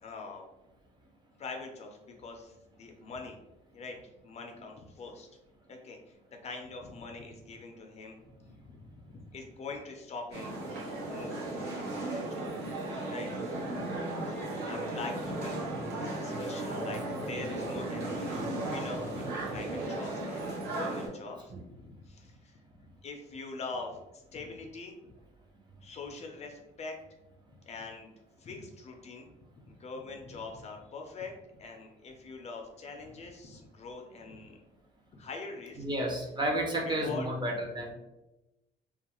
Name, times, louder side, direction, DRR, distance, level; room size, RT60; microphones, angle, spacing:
voice 1, 0.0-0.5 1.4-3.4 3.7-5.3 5.7-6.2 6.4-10.5 10.8-12.5 13.1-13.3 14.3-21.5 21.8-24.9 25.8-27.0 27.7-28.1 28.4-29.3 29.7-31.3 31.6-34.6 35.1-35.8 36.8-37.3, left 3 dB, 40° left, 2 dB, 0.4 m, -43 dB
sound 1, 10.3-21.1, right 2 dB, 80° right, 0.8 m, -35 dB
voice 2, 35.8-37.9, right 1 dB, 25° right, 0 dB, 0.6 m, -31 dB
2.4 x 2.3 x 2.9 m, 1.0 s
cardioid pair, 110°, 17 cm